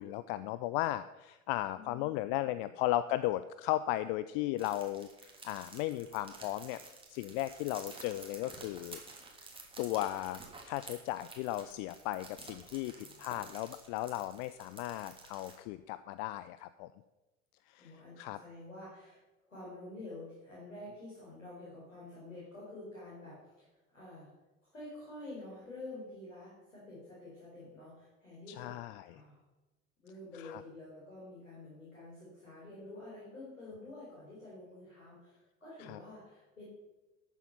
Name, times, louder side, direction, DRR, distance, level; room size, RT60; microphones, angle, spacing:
voice 1, 0.0-6.8 7.1-9.0 9.8-10.4 10.6-12.9 13.2-16.9 17.7-18.4 28.5-29.2 30.4-30.6 35.8-36.0, left 15 dB, 45° left, 14 dB, 0.5 m, -36 dB
voice 2, 1.7-2.7 12.8-13.2 17.8-19.2 19.5-23.7 23.9-24.3 24.7-29.4 30.0-36.6, left 2 dB, 80° left, -7 dB, 4.5 m, -49 dB
sound 1, 4.6-15.5, right 3 dB, 15° right, 3.1 m, -51 dB
13.0 x 8.5 x 5.6 m, 1.1 s
figure-of-eight pair, 70°, 39 cm